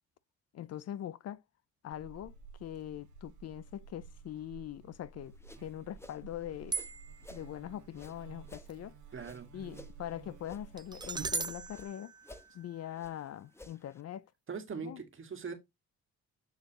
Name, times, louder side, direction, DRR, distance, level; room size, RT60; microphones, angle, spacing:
voice 1, 0.5-1.4 1.8-2.3 2.6-6.8 7.3-8.9 9.5-12.1 12.5-14.3 14.8-15.0, left 11 dB, 55° left, 0.5 m, -42 dB
Buzz, 1.9-11.9, right 5 dB, 70° right, 1.6 m, -52 dB
sound 1, 5.2-7.5 7.9-10.7 10.9-11.9 12.2-14.0, left 1 dB, 10° left, 0.9 m, -55 dB
sound 2, 6.7-7.4 10.8-13.0, right 4 dB, 15° right, 0.4 m, -39 dB
voice 2, 9.1-9.5 14.5-15.5, right 5 dB, 40° right, 1.9 m, -41 dB
6.8 x 6.5 x 3.0 m
cardioid pair, 90°, 30 cm